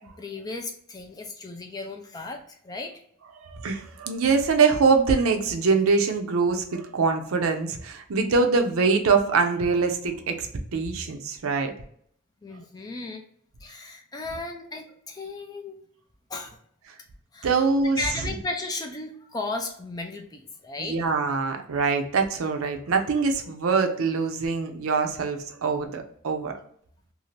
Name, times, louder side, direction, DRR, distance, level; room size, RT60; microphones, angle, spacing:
voice 1, 0.0-2.9 12.4-13.2 13.6-15.8 16.3-16.6 17.3-17.5 18.0-21.0, left 3 dB, 20° left, 3 dB, 0.4 m, -35 dB
voice 2, 3.4-11.7 17.4-18.0 20.8-26.5, right 4 dB, 75° right, 5 dB, 0.5 m, -24 dB
2.7 x 2.4 x 3.1 m, 0.65 s
head